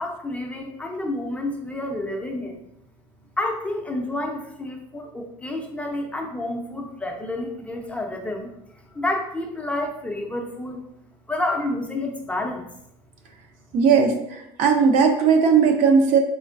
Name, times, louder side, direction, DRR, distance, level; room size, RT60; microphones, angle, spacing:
voice 1, 0.0-2.6 3.4-10.8 11.3-12.7, left 1 dB, 10° left, 1 dB, 0.5 m, -29 dB
voice 2, 13.7-16.2, right 6 dB, 60° right, 4 dB, 0.6 m, -18 dB
4.3 x 3.1 x 2.4 m, 0.79 s
cardioid pair, 125°, 14 cm